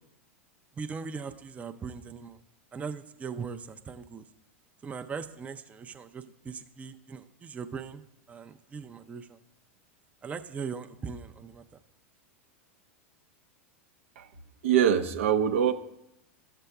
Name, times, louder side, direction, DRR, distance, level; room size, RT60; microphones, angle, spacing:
voice 1, 0.8-2.4 2.7-4.2 4.8-9.4 10.2-11.6, right 5 dB, 20° right, 8 dB, 0.4 m, -39 dB
voice 2, 14.6-15.7, right 9 dB, 70° right, 8 dB, 0.6 m, -23 dB
12.5 x 6.7 x 2.3 m, 0.84 s
hypercardioid pair, 95°, 7 cm